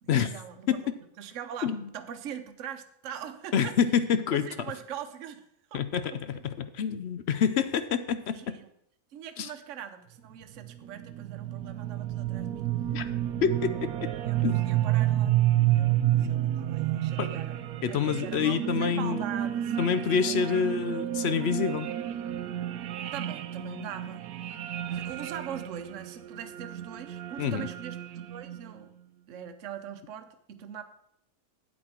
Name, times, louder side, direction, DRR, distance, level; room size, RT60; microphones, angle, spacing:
voice 1, 0.0-0.9 1.2-3.7 4.3-5.4 5.7-5.8 6.1-6.2 8.3-8.7 9.1-12.7 14.2-17.6 17.9-19.7 20.3-20.5 23.1-24.2 24.9-28.9 29.3-30.8, right 8 dB, 60° right, 8 dB, 1.1 m, -41 dB
voice 2, 3.5-4.5 5.7-8.5 9.4-9.5 12.9-13.0 13.4-14.1 14.4-14.6 17.2-17.3 17.8-19.2 19.8-21.9 27.4-27.7, left 7 dB, 60° left, 12 dB, 0.7 m, -27 dB
sound 1, 10.4-28.8, right 13 dB, 85° right, 1.1 m, -30 dB
8.8 x 8.7 x 4.4 m, 0.74 s
omnidirectional pair, 1.5 m